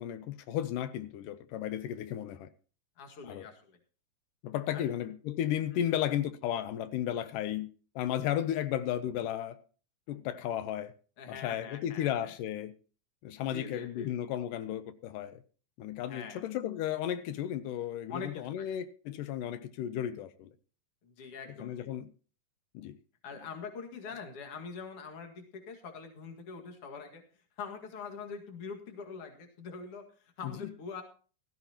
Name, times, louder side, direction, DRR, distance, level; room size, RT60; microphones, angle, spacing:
voice 1, 0.0-2.5 3.2-3.5 4.4-7.7 8.0-9.6 10.1-10.9 11.3-12.7 13.2-15.4 15.8-20.5 21.6-22.1 22.7-23.0 30.4-30.7, left 11 dB, 85° left, 2.4 m, -34 dB
voice 2, 3.0-3.8 4.7-4.9 11.2-12.3 13.5-14.1 16.1-16.4 18.1-18.7 21.0-21.9 23.2-27.2 27.6-31.0, left 5 dB, 50° left, 2.7 m, -44 dB
16.5 x 14.0 x 2.9 m
omnidirectional pair, 3.7 m